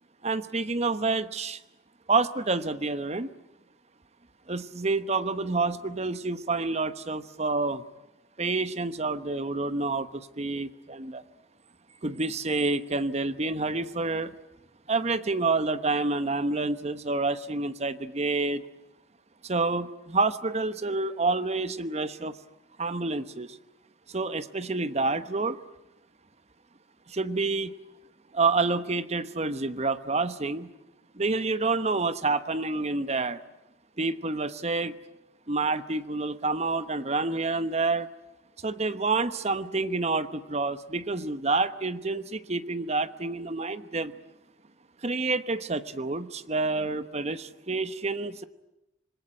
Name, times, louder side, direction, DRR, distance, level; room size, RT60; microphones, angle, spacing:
voice 1, 0.2-1.6 2.1-3.3 4.5-7.8 8.4-11.2 12.0-14.3 14.9-18.6 19.4-22.4 22.8-23.6 24.1-25.6 27.1-27.7 28.3-30.7 31.1-33.4 34.0-34.9 35.5-38.1 38.6-44.1 45.0-48.4, right 3 dB, 35° right, 12 dB, 1.1 m, -28 dB
27.0 x 20.5 x 9.9 m, 0.92 s
head